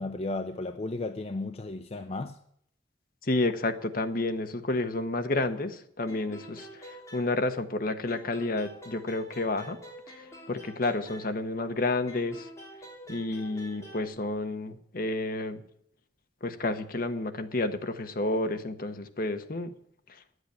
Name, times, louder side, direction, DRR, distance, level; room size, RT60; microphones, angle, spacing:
voice 1, 0.0-2.4, left 2 dB, 35° left, 0.5 m, -34 dB
voice 2, 3.3-9.8 10.5-12.5 13.1-15.6 16.4-19.7, left 2 dB, 50° left, 1.0 m, -30 dB
sound 1, 6.1-7.8 8.1-11.7 12.1-14.1, equal, 15° left, 3.2 m, -47 dB
10.0 x 8.1 x 9.3 m
head